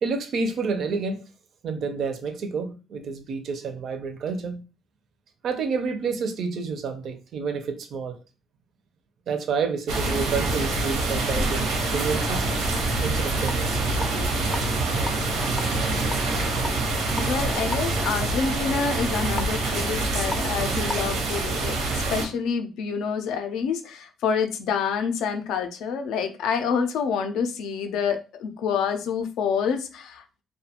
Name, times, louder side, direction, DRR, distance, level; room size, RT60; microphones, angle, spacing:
voice 1, 0.0-1.2 1.6-4.6 5.4-8.2 9.3-12.5 13.0-13.8 14.1-14.3, right 5 dB, 50° right, 0.4 m, -29 dB
sound 1, 9.9-22.3, right 2 dB, 85° right, 0.7 m, -26 dB
sound 2, 13.3-21.1, left 2 dB, 15° left, 0.4 m, -39 dB
voice 2, 17.3-30.4, left 6 dB, 80° left, 0.4 m, -27 dB
2.4 x 2.2 x 2.8 m
cardioid pair, 155°, 0 cm